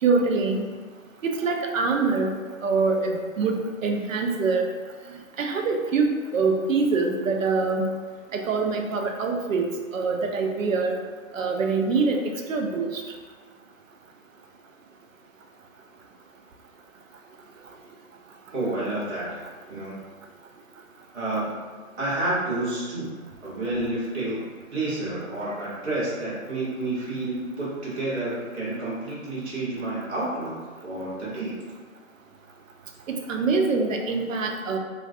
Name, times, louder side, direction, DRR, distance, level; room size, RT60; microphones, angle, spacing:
voice 1, 0.0-0.7 1.2-2.3 2.6-4.7 5.4-7.9 8.3-11.0 11.3-12.2 12.5-13.0 33.1-34.8, right 4 dB, 65° right, 3 dB, 0.5 m, -24 dB
voice 2, 18.5-19.4 19.7-20.0 21.1-21.7 22.0-23.1 23.4-24.4 24.7-30.5 30.8-31.5, right 2 dB, 50° right, -7 dB, 1.2 m, -29 dB
2.3 x 2.2 x 2.5 m, 1.4 s
hypercardioid pair, 150°, 42 cm